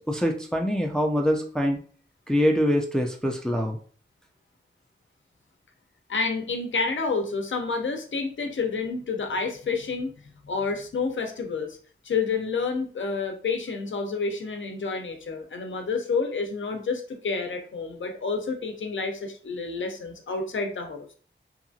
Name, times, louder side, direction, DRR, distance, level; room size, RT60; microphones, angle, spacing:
voice 1, 0.1-1.8 2.3-3.8, equal, 5° left, 1 dB, 0.4 m, -24 dB
voice 2, 6.1-10.1 10.4-11.8 12.0-21.1, left 4 dB, 75° left, 4 dB, 0.6 m, -29 dB
2.8 x 2.4 x 2.6 m, 0.43 s
wide cardioid pair, 75°, 20 cm